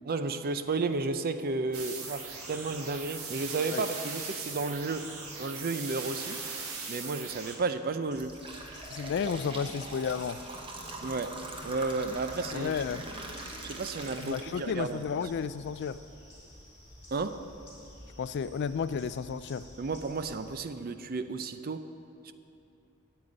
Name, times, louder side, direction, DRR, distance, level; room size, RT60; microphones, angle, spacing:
voice 1, 0.0-5.1 5.4-6.4 6.9-8.4 11.0-12.8 13.6-15.2 17.1-17.5 19.8-21.9 22.2-22.3, right 3 dB, 45° right, 0.5 m, -33 dB
sound 1, 1.7-7.6, right 4 dB, 75° right, 1.6 m, -39 dB
sound 2, 7.9-15.0 15.5-15.6 16.5-16.6 17.1-17.2 17.6-17.8, right 2 dB, 25° right, 1.0 m, -42 dB
sound 3, 8.1-20.6, left 1 dB, 15° left, 3.1 m, -52 dB
voice 2, 8.9-10.4 12.5-13.0 14.2-16.0 18.2-19.7, left 6 dB, 50° left, 0.3 m, -32 dB
9.1 x 8.1 x 8.6 m
head